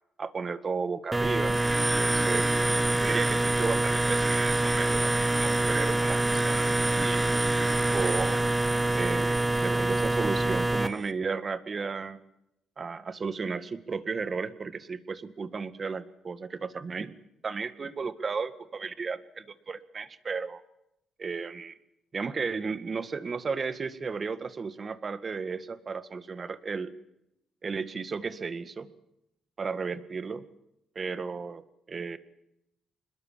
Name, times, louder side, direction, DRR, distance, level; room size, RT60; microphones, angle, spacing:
voice 1, 0.2-1.6 2.0-2.5 3.0-7.3 7.6-8.4 8.9-12.2 12.8-17.1 17.4-20.6 21.2-21.7 22.1-26.9 27.6-28.9 29.6-30.4 30.9-32.2, right 5 dB, 40° right, 13 dB, 1.8 m, -34 dB
sound 1, 1.1-10.9, right 2 dB, 15° right, 1.1 m, -25 dB
26.0 x 21.5 x 7.5 m, 0.82 s
cardioid pair, 90°, 0 cm